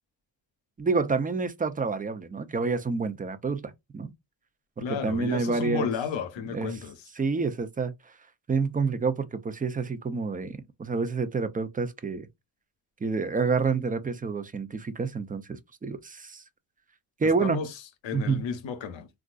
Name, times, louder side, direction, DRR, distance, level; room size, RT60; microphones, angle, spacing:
voice 1, 0.8-4.1 4.8-5.9 6.5-6.7 7.2-7.9 8.5-12.3 13.0-16.4 17.2-17.6 18.1-18.4, right 4 dB, 20° right, 0.5 m, -28 dB
voice 2, 4.8-6.9 17.2-17.7 18.0-19.1, left 6 dB, 70° left, 0.8 m, -32 dB
3.5 x 2.5 x 2.4 m
cardioid pair, 80°, 47 cm